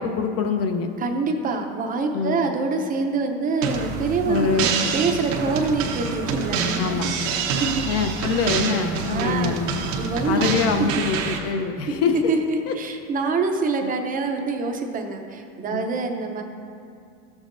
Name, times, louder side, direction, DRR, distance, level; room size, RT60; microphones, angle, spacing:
voice 1, 0.0-0.9 2.1-2.5 4.2-4.7 5.5-5.6 6.8-7.3 7.9-9.8 10.3-12.2 12.7-12.8 13.8-13.9 15.7-15.9, left 5 dB, 40° left, 7 dB, 0.6 m, -25 dB
voice 2, 1.0-7.8 9.1-9.6 10.0-10.5 11.9-12.0 12.3-16.4, right 4 dB, 20° right, 3 dB, 0.6 m, -26 dB
sound 1, 3.6-11.4, right 5 dB, 85° right, 1.1 m, -26 dB
12.5 x 7.3 x 2.6 m, 2.4 s
supercardioid pair, 135°, 38 cm